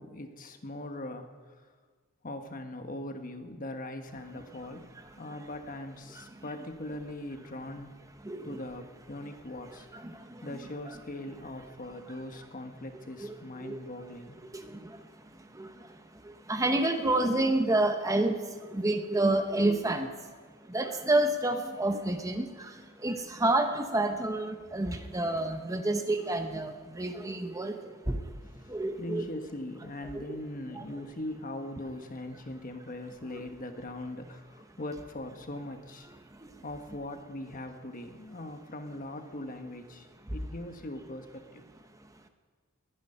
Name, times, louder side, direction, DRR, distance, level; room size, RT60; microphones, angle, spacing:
voice 1, 0.0-1.7 2.2-4.9 5.2-7.9 8.4-9.9 10.4-14.4 28.6-36.1 36.6-41.7, left 1 dB, 40° left, 6 dB, 1.3 m, -40 dB
voice 2, 8.3-8.6 10.0-10.1 10.5-10.6 13.2-13.3 13.6-13.8 15.6-15.7 16.5-18.4 18.7-20.1 20.7-22.7 23.0-27.7 28.1-28.2 28.7-29.3 30.1-30.4 30.8-30.9, right 2 dB, 15° right, 6 dB, 0.8 m, -28 dB
21.0 x 10.5 x 5.6 m, 1.5 s
head